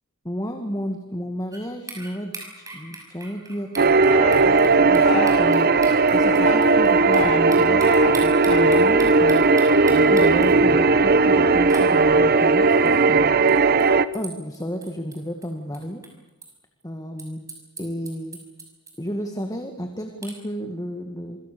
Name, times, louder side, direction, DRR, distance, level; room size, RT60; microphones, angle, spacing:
voice 1, 0.2-3.7 4.4-13.3 14.1-16.0 16.8-17.5 17.8-18.4 19.0-21.4, equal, 15° left, 5 dB, 2.0 m, -32 dB
sound 1, 1.5-1.6 1.9-7.2 7.5-10.5 11.7-11.9 12.9-13.0 13.5-13.6 13.8-13.9 14.1-15.5 15.7-16.5 16.8-16.9 17.2-19.1 19.4-19.5 20.2-20.4, right 3 dB, 15° right, 5.9 m, -39 dB
sound 2, 3.8-14.1, right 3 dB, 45° right, 0.9 m, -17 dB
sound 3, 4.1-4.4 5.0-5.3 6.2-6.6 7.1-7.4 7.8-8.1 8.5-9.0, left 3 dB, 80° left, 7.5 m, -28 dB
27.0 x 24.5 x 6.9 m, 0.98 s
head